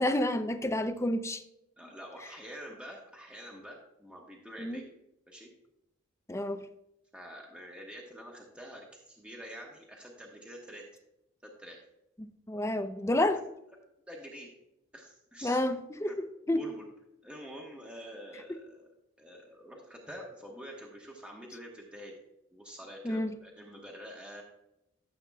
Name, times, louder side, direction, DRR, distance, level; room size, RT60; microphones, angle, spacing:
voice 1, 0.0-1.4 4.6-4.8 6.3-6.6 12.2-13.4 15.4-16.6 23.0-23.3, left 1 dB, 15° left, 0.6 m, -30 dB
voice 2, 1.8-4.9 5.3-5.5 7.1-10.8 11.4-11.8 14.1-14.5 14.9-15.6 16.1-16.2 16.4-16.9 17.2-18.9 19.2-22.1 22.5-24.4, equal, 5° right, 1.2 m, -47 dB
14.0 x 7.8 x 2.3 m
head